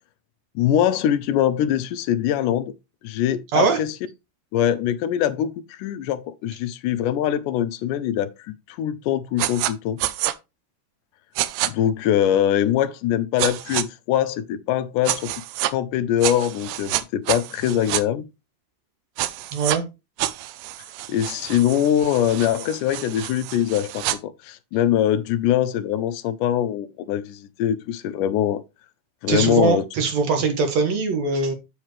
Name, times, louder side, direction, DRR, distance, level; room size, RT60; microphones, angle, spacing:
voice 1, 0.6-2.7 3.0-4.0 4.5-10.0 11.6-15.3 15.7-18.2 21.1-28.6 29.2-29.8, left 10 dB, 80° left, 2.2 m, -23 dB
sound 1, 9.4-9.7 10.0-10.3 11.4-11.7 13.4-13.8 15.0-15.7 16.2-18.0 19.2-19.8 20.2-24.2, right 14 dB, 80° right, 1.6 m, -28 dB
voice 2, 19.5-19.8 29.3-31.5, right 4 dB, 60° right, 2.7 m, -21 dB
7.4 x 7.3 x 3.1 m
omnidirectional pair, 3.7 m